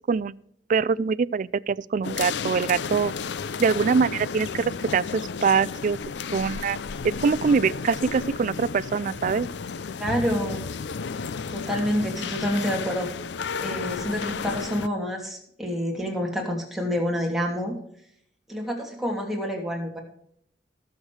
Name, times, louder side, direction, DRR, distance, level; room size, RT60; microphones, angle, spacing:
voice 1, 0.7-3.1 3.6-6.0 6.3-6.8 7.0-9.5, right 5 dB, 45° right, 20 dB, 0.4 m, -23 dB
sound 1, 2.0-14.9, left 5 dB, 75° left, 0.5 m, -33 dB
voice 2, 10.0-10.7 11.5-13.1 13.6-17.7 18.5-20.0, equal, ahead, -1 dB, 2.8 m, -28 dB
18.5 x 7.3 x 3.3 m, 0.69 s
head